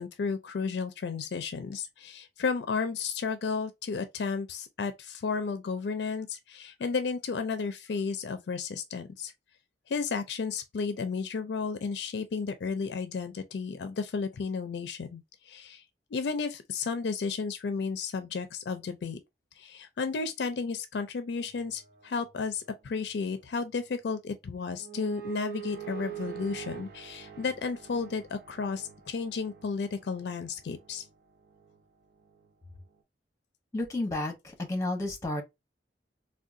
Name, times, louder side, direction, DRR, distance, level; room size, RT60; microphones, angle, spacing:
voice 1, 0.0-9.3 9.9-15.8 16.1-19.2 19.6-31.0, left 5 dB, 70° left, 0.4 m, -33 dB
sound 1, 21.4-24.1 24.4-32.5, right 10 dB, 60° right, 0.8 m, -46 dB
voice 2, 33.7-35.4, left 2 dB, 15° left, 0.9 m, -31 dB
3.6 x 2.2 x 2.5 m
head